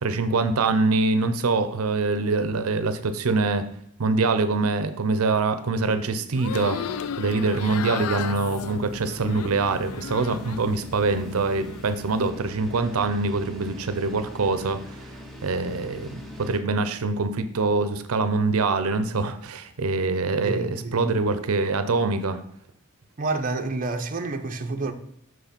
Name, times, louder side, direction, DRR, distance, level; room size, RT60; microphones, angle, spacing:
voice 1, 0.0-3.6 4.0-15.1 15.4-22.4, right 3 dB, 75° right, 0.6 m, -24 dB
sound 1, 6.3-10.8 11.1-11.8, left 8 dB, 80° left, 0.4 m, -35 dB
sound 2, 6.5-16.6, left 1 dB, ahead, 0.9 m, -42 dB
voice 2, 20.4-21.0 23.2-24.9, right 3 dB, 40° right, 0.7 m, -29 dB
6.2 x 4.9 x 5.1 m
head